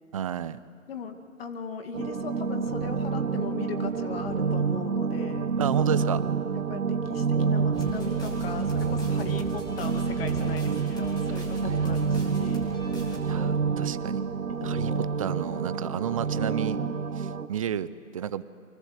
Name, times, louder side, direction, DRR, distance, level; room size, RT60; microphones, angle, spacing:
voice 1, 0.1-0.6 5.6-6.2 11.4-11.8 13.3-14.2 14.6-14.9 15.2-16.8 17.2-18.4, right 9 dB, 25° right, 16 dB, 0.6 m, -31 dB
voice 2, 0.9-5.5 6.5-12.7 14.5-15.0, left 6 dB, 45° left, 7 dB, 2.2 m, -38 dB
sound 1, 1.9-17.5, right 5 dB, 75° right, 1.4 m, -28 dB
sound 2, 7.7-13.2, right 1 dB, 10° left, 3.5 m, -39 dB
29.5 x 24.0 x 7.9 m, 2.5 s
figure-of-eight pair, 135°, 41 cm